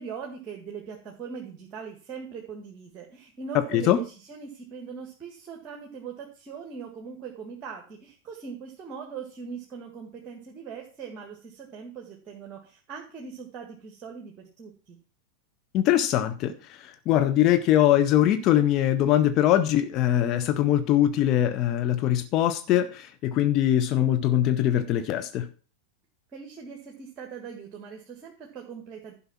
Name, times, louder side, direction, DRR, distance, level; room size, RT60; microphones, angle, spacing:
voice 1, 0.0-15.0 26.3-29.1, right 6 dB, 30° right, 1 dB, 1.8 m, -41 dB
voice 2, 15.7-25.5, left 12 dB, 35° left, 9 dB, 0.7 m, -22 dB
11.5 x 5.6 x 5.8 m, 0.37 s
figure-of-eight pair, 90°, 0 cm